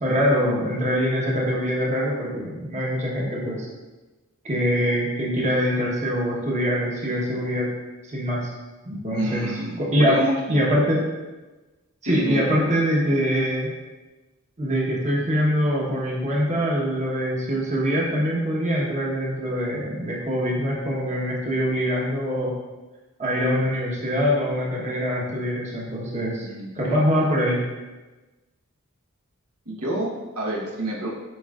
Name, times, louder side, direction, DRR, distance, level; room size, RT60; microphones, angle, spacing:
voice 1, 0.0-3.7 4.4-7.7 8.0-8.5 8.8-9.5 9.8-10.2 10.5-11.0 12.0-13.7 14.6-22.5 23.2-26.5 26.7-27.7, equal, 30° right, -4 dB, 1.2 m, -23 dB
voice 2, 9.1-10.4 12.0-12.5 26.4-27.3 29.7-31.1, right 1 dB, 75° right, -2 dB, 1.2 m, -29 dB
7.7 x 5.6 x 2.5 m, 1.2 s
head